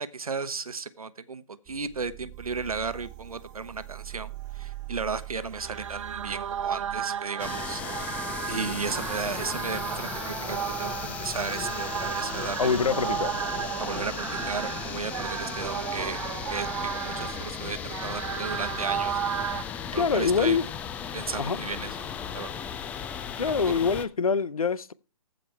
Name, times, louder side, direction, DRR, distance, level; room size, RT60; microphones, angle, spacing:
voice 1, 0.0-7.8 8.5-13.1 13.8-16.2 16.5-16.7 16.9-19.3 19.6-20.6 21.1-22.1 22.3-22.6, right 5 dB, 85° right, 1.0 m, -34 dB
sound 1, 1.7-7.0, right 17 dB, 20° right, 1.5 m, -43 dB
sound 2, 5.3-19.6, right 8 dB, 60° right, 0.5 m, -33 dB
sound 3, 7.4-24.1, left 8 dB, 10° left, 0.4 m, -36 dB
voice 2, 12.6-13.3 19.9-20.7 21.4-21.6 23.4-24.9, left 5 dB, 80° left, 0.7 m, -25 dB
14.5 x 5.2 x 4.5 m
figure-of-eight pair, 135°, 18 cm